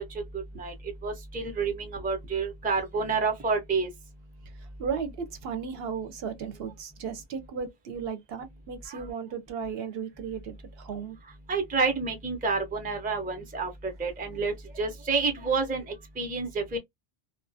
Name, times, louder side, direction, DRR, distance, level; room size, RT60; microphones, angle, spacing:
voice 1, 1.0-3.9 11.5-15.8 16.2-16.8, right 4 dB, 10° right, 0.4 m, -29 dB
voice 2, 4.8-11.2, right 6 dB, 65° right, 0.8 m, -35 dB
2.3 x 2.0 x 2.6 m
omnidirectional pair, 1.1 m